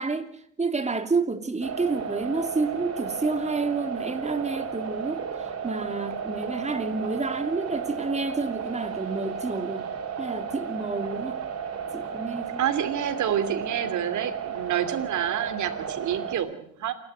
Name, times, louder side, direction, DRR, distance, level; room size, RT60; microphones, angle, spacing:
voice 1, 0.0-9.9 10.2-11.4 11.9-12.6, right 3 dB, 20° right, 2.7 m, -29 dB
sound 1, 1.6-16.4, right 6 dB, 55° right, 5.7 m, -34 dB
voice 2, 12.6-16.9, right 9 dB, 75° right, 2.7 m, -28 dB
28.0 x 12.0 x 7.8 m
cardioid pair, 90°, 30 cm